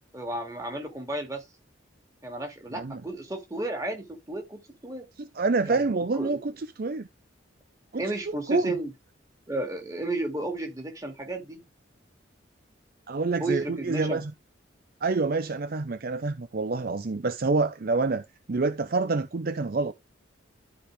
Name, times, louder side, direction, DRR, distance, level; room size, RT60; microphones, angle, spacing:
voice 1, 0.1-1.4 2.2-5.1 5.7-5.8 6.1-6.4 8.0-8.9 9.5-11.6 13.4-14.2, right 2 dB, 15° right, 2.7 m, -33 dB
voice 2, 5.2-7.1 7.9-8.7 13.1-14.3 15.0-19.9, right 3 dB, 50° right, 0.6 m, -27 dB
13.0 x 5.0 x 3.5 m
head